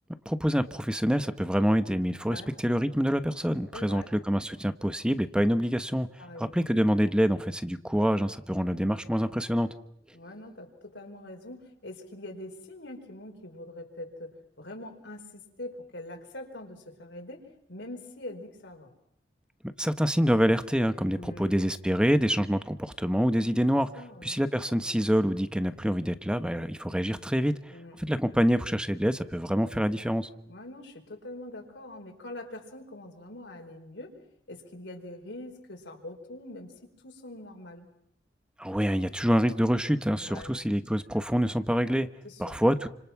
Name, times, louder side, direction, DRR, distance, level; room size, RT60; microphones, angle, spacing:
voice 1, 0.2-6.1 6.4-9.7 19.8-23.9 24.2-27.5 28.0-30.3 38.6-42.1 42.4-42.9, equal, 5° right, 11 dB, 1.2 m, -26 dB
voice 2, 3.7-4.1 6.2-6.5 10.1-18.9 21.2-21.5 23.9-24.4 27.7-28.0 30.5-34.2 34.5-37.9 40.2-40.5 42.2-42.6, left 1 dB, 70° left, 3 dB, 5.0 m, -43 dB
29.5 x 26.5 x 6.0 m, 0.74 s
head